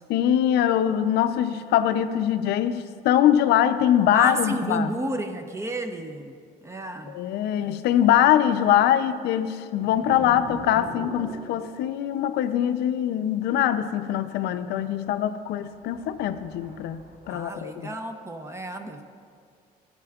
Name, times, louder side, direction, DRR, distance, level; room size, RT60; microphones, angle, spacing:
voice 1, 0.1-4.9 7.1-17.0 17.3-17.9, left 10 dB, 75° left, 11 dB, 0.5 m, -23 dB
voice 2, 4.1-7.2 17.3-19.0, right 1 dB, 15° right, 6 dB, 0.5 m, -31 dB
sound 1, 9.7-12.1 13.5-13.7 14.2-14.5 15.6-17.5, right 1 dB, 50° right, 1.6 m, -41 dB
14.0 x 8.6 x 2.3 m, 2.2 s
cardioid pair, 110°, 17 cm